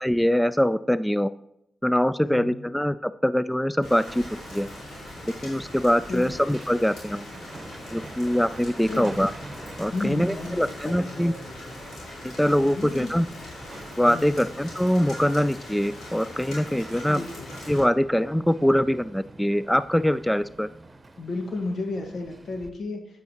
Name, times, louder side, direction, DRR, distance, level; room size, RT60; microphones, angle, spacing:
voice 1, 0.0-1.3 1.8-4.7 5.4-7.3 7.9-9.3 9.8-11.3 12.2-13.3 14.0-17.2 17.7-20.7, equal, 5° left, 15 dB, 0.3 m, -23 dB
voice 2, 2.3-2.6 6.1-6.4 8.9-9.2 9.9-11.8 12.6-13.1 14.0-14.3 17.1-17.5 21.2-23.1, left 2 dB, 70° left, 3 dB, 1.6 m, -33 dB
Rain, 3.8-17.8, left 1 dB, 90° left, 3.8 m, -41 dB
Hammer, 4.1-22.7, right 2 dB, 40° right, 1.0 m, -46 dB
9.0 x 8.3 x 3.0 m, 0.78 s
supercardioid pair, 45°, 0 cm